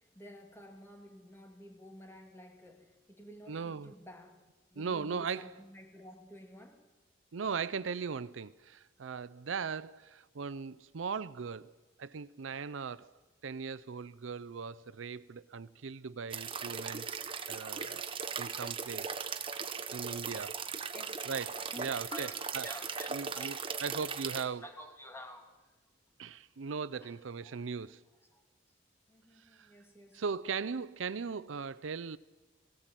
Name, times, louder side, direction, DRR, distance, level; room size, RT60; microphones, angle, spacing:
voice 1, 0.0-4.3 4.7-6.8 20.9-21.2 21.7-23.6 24.6-25.7 27.0-27.1 27.4-27.8 28.3-28.4 29.1-30.2, equal, 15° left, 2.7 m, -51 dB
voice 2, 3.5-3.9 4.8-5.5 7.3-11.7 12.0-13.1 13.4-18.1 18.4-19.2 19.9-20.6 21.3-22.3 22.5-22.7 23.1-23.5 23.8-24.7 26.2-28.0 29.5-29.7 30.1-32.2, right 5 dB, 85° right, 0.5 m, -38 dB
sound 1, 16.3-24.4, right 6 dB, 30° right, 1.0 m, -38 dB
17.5 x 17.0 x 9.0 m
head